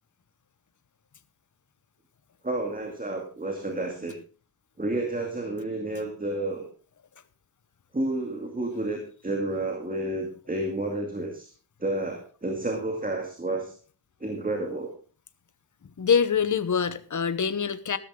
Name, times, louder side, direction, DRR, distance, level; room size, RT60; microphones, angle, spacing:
voice 1, 2.4-4.2 4.8-6.7 7.9-11.5 11.8-13.8 14.2-15.0, right 2 dB, 20° right, 2 dB, 2.2 m, -30 dB
voice 2, 16.0-18.0, left 6 dB, 45° left, 13 dB, 1.0 m, -24 dB
14.0 x 13.0 x 3.8 m, 0.37 s
wide cardioid pair, 155°, 43 cm